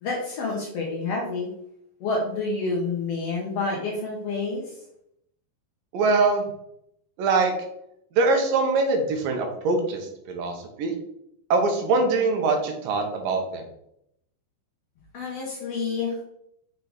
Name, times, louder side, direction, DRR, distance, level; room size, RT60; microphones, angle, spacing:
voice 1, 0.0-1.5 2.0-4.6 15.1-16.2, left 3 dB, 85° left, -2 dB, 1.3 m, -28 dB
voice 2, 5.9-6.4 7.2-7.5 8.2-10.9 11.5-13.6, right 3 dB, 70° right, 3 dB, 2.5 m, -23 dB
6.7 x 4.7 x 4.0 m, 0.76 s
omnidirectional pair, 4.6 m